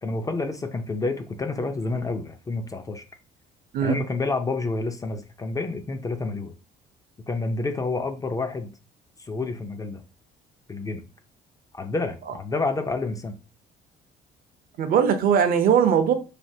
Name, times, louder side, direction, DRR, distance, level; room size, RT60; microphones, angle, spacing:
voice 1, 0.0-3.0 3.8-6.5 7.3-8.7 9.2-10.0 10.7-11.0 11.7-13.3, left 3 dB, 20° left, 0.4 m, -29 dB
voice 2, 14.8-16.1, right 7 dB, 60° right, 0.5 m, -20 dB
3.3 x 2.2 x 2.7 m
cardioid pair, 110°, 17 cm